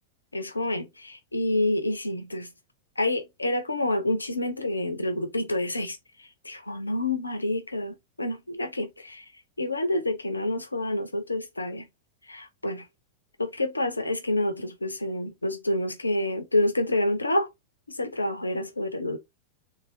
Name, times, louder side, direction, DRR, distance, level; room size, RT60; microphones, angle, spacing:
voice 1, 0.3-2.5 3.0-6.0 6.4-9.2 9.6-11.9 12.3-12.8 13.4-17.5 17.9-19.2, left 1 dB, 80° left, 0.8 m, -28 dB
3.5 x 3.5 x 3.7 m
figure-of-eight pair, 90°, 0 cm